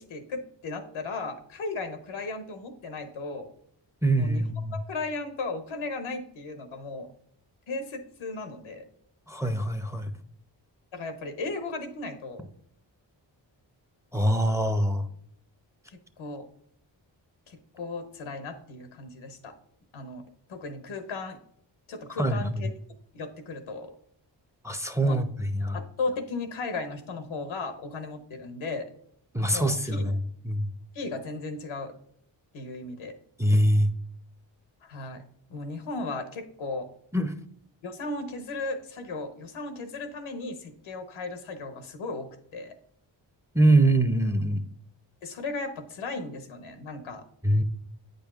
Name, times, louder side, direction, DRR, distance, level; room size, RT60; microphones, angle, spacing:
voice 1, 0.0-3.5 4.2-4.4 4.9-7.1 7.7-8.9 10.9-12.5 15.9-16.4 17.5-19.5 19.9-20.2 20.5-21.4 21.9-22.7 23.1-23.9 25.0-25.2 25.7-28.9 29.5-30.1 30.9-31.9 32.5-33.1 34.8-35.2 35.5-36.9 37.8-42.8 45.2-47.2, left 3 dB, 85° left, 8 dB, 0.9 m, -36 dB
voice 2, 4.0-4.8 9.3-10.1 14.1-15.1 22.2-22.6 24.6-25.8 29.3-30.1 30.4-30.7 33.4-33.9 37.1-37.3 43.5-44.7 47.4-47.6, right 1 dB, 5° right, 9 dB, 0.6 m, -24 dB
8.5 x 5.3 x 2.4 m, 0.66 s
cardioid pair, 40°, 47 cm